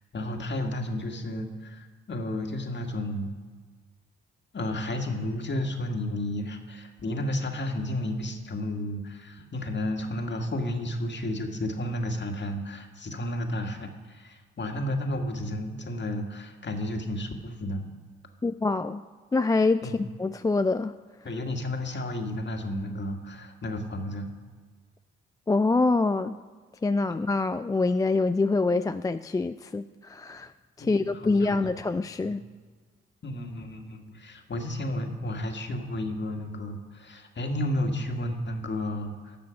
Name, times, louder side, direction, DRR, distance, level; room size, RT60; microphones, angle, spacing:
voice 1, 0.1-3.4 4.5-17.9 19.8-20.1 21.2-24.3 30.8-31.8 32.2-32.4 33.2-39.4, left 1 dB, 40° left, 4 dB, 1.8 m, -32 dB
voice 2, 18.4-19.0 19.3-20.9 25.5-26.4 26.8-30.5 30.8-32.4, left 3 dB, 15° left, 10 dB, 0.3 m, -25 dB
13.0 x 6.8 x 5.1 m, 1.5 s
hypercardioid pair, 45°, 29 cm